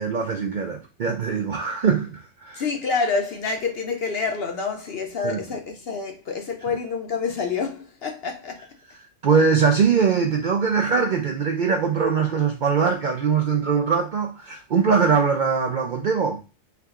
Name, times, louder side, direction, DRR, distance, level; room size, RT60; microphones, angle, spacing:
voice 1, 0.0-2.6 5.2-5.4 9.2-16.4, right 6 dB, 65° right, 0.5 m, -22 dB
voice 2, 2.5-8.7, left 4 dB, 55° left, 0.8 m, -27 dB
4.5 x 2.3 x 3.6 m
omnidirectional pair, 1.4 m